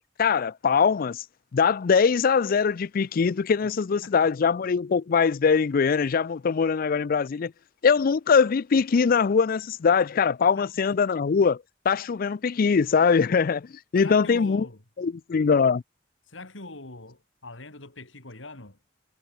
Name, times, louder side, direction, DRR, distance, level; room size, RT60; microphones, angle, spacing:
voice 1, 0.2-1.2 1.5-7.5 7.8-13.7 13.9-14.7 15.0-15.8, left 5 dB, 50° left, 0.4 m, -22 dB
voice 2, 14.0-14.8 16.2-18.8, left 2 dB, 85° left, 3.7 m, -43 dB
head